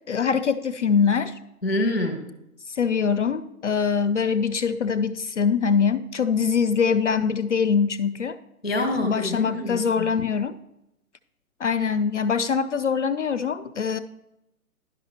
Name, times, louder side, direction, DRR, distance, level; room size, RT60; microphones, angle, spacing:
voice 1, 0.1-1.3 2.7-8.4 9.0-10.6 11.6-14.0, left 6 dB, 55° left, 13 dB, 0.5 m, -23 dB
voice 2, 1.6-2.3 8.6-10.1, left 1 dB, 5° right, 3 dB, 0.6 m, -26 dB
11.0 x 5.1 x 4.3 m, 0.88 s
hypercardioid pair, 150°, 45 cm